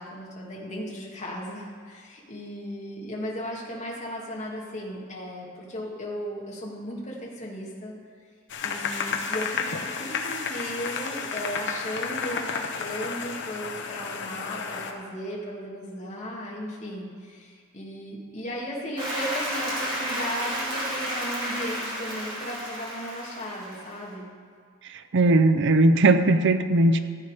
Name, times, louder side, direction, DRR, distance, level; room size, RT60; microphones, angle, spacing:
voice 1, 0.0-7.9 8.6-24.3, equal, 35° left, -3 dB, 1.9 m, -36 dB
sound 1, 8.5-14.9, left 5 dB, 60° left, 0.9 m, -32 dB
Applause, 19.0-24.0, equal, 25° right, 3.0 m, -32 dB
voice 2, 24.9-27.0, right 2 dB, 60° right, 10 dB, 0.5 m, -19 dB
14.5 x 7.4 x 4.9 m, 2.1 s
head